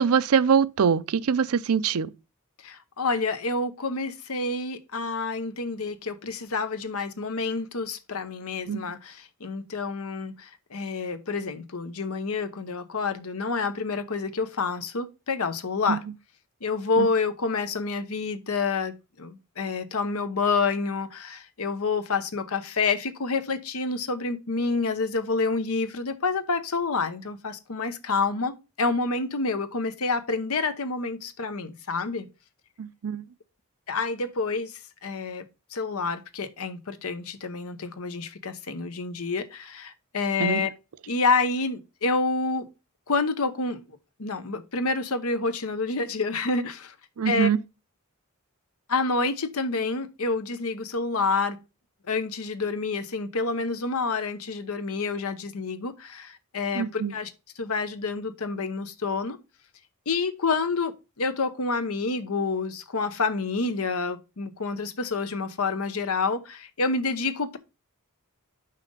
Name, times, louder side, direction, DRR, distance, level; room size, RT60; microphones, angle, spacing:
voice 1, 0.0-2.1 8.7-8.8 15.9-16.0 17.0-17.1 32.8-33.2 40.4-40.6 47.2-47.6 56.8-57.1, right 6 dB, 75° right, 0.5 m, -23 dB
voice 2, 2.6-16.0 16.6-32.3 33.9-35.4 35.7-40.7 41.1-42.7 43.1-43.8 44.2-46.9 47.2-47.5 48.9-51.6 52.1-57.3 57.6-59.4 60.1-67.6, left 4 dB, 80° left, 0.9 m, -28 dB
5.8 x 5.0 x 5.2 m
head